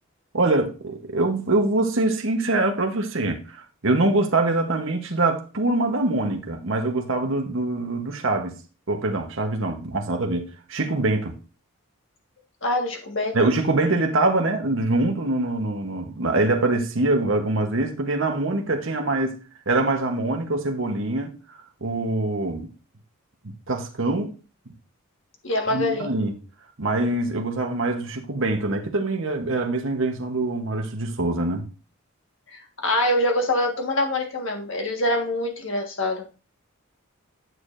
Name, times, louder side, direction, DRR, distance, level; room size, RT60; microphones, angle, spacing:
voice 1, 0.3-8.5 8.9-11.4 13.3-19.4 19.7-21.3 21.8-22.7 23.7-24.3 25.7-26.3 26.8-31.6, right 2 dB, 60° right, 1.1 m, -24 dB
voice 2, 12.6-13.4 25.4-26.1 32.5-36.2, left 1 dB, 60° left, 1.6 m, -24 dB
9.4 x 6.5 x 2.6 m
head